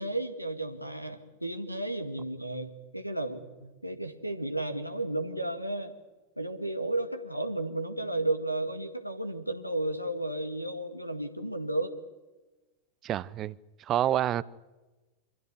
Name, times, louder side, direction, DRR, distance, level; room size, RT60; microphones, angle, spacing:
voice 1, 0.0-5.9 6.4-12.0, right 2 dB, 90° right, 1.9 m, -33 dB
voice 2, 13.0-14.4, right 12 dB, 30° right, 0.6 m, -28 dB
26.0 x 15.5 x 8.3 m
figure-of-eight pair, 90°, 0 cm